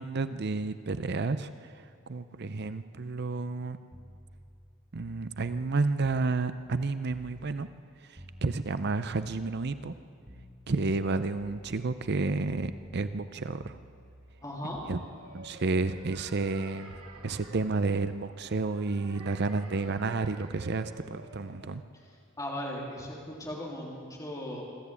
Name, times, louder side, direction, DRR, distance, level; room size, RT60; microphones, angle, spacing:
voice 1, 0.0-3.8 4.9-7.7 8.0-9.9 10.7-13.8 14.9-15.0 15.3-16.9 17.2-21.8, right 3 dB, 50° right, 12 dB, 0.6 m, -31 dB
sound 1, 3.9-7.9 8.1-12.2 12.5-13.3 13.6-14.5 14.7-18.7 19.9-20.2, equal, 25° right, 1.6 m, -52 dB
voice 2, 14.4-14.8 22.0-24.6, left 1 dB, 15° left, -3 dB, 3.3 m, -38 dB
sound 2, 14.6-21.7, right 3 dB, 85° right, 2.5 m, -50 dB
26.0 x 13.5 x 8.4 m, 2.3 s
head